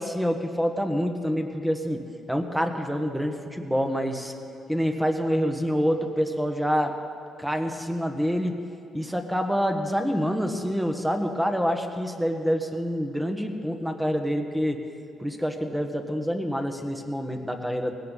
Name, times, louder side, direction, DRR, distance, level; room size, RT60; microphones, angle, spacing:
voice 1, 0.0-2.0 2.3-4.3 4.7-6.9 7.4-8.6 8.9-14.8 15.2-17.9, equal, 5° right, 4 dB, 1.5 m, -27 dB
19.0 x 17.0 x 4.1 m, 2.8 s
cardioid pair, 90°, 0 cm